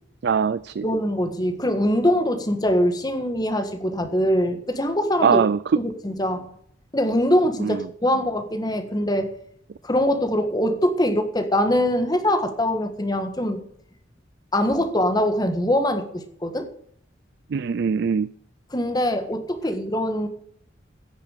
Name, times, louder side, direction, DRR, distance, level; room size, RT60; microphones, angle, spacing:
voice 1, 0.2-0.9 5.2-5.6 7.6-7.9 17.5-18.3, right 6 dB, 60° right, 16 dB, 0.4 m, -22 dB
voice 2, 0.8-5.4 5.8-6.5 6.9-9.3 9.8-13.6 14.5-16.7 18.7-20.3, equal, 20° left, 7 dB, 1.6 m, -23 dB
15.0 x 6.8 x 6.6 m, 0.66 s
head